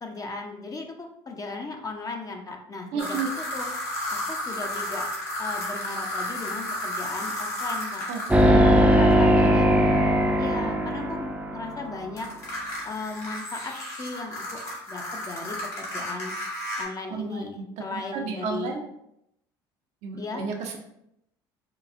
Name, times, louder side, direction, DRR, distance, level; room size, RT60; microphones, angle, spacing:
voice 1, 0.0-3.7 4.3-5.1 5.4-8.1 8.5-9.7 10.4-12.3 12.8-16.3 16.8-18.8 20.1-20.4, left 3 dB, 30° left, 3 dB, 0.6 m, -36 dB
voice 2, 2.9-3.3 8.1-8.6 17.1-17.4 17.9-18.8 20.0-20.8, right 6 dB, 60° right, 2 dB, 0.7 m, -32 dB
sound 1, 3.0-8.4 12.2-16.8, left 1 dB, 65° left, 1.4 m, -32 dB
sound 2, 8.3-11.7, equal, 10° right, 0.6 m, -19 dB
4.6 x 2.3 x 2.6 m, 0.78 s
hypercardioid pair, 65°, 12 cm